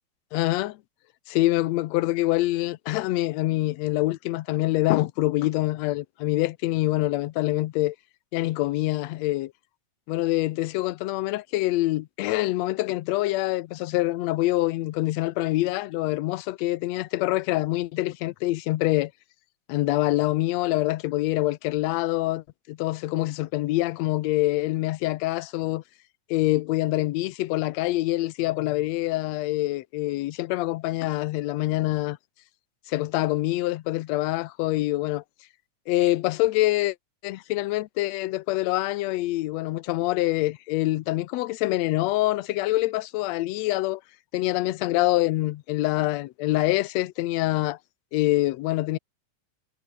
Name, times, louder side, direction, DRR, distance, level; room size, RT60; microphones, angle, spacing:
voice 1, 0.3-0.8 1.3-8.0 8.3-9.5 10.1-19.1 19.7-25.8 26.3-32.2 32.9-35.2 35.9-37.0 37.2-44.0 44.3-47.8 48.1-49.0, left 17 dB, 75° left, 1.9 m, -25 dB
omnidirectional pair, 3.3 m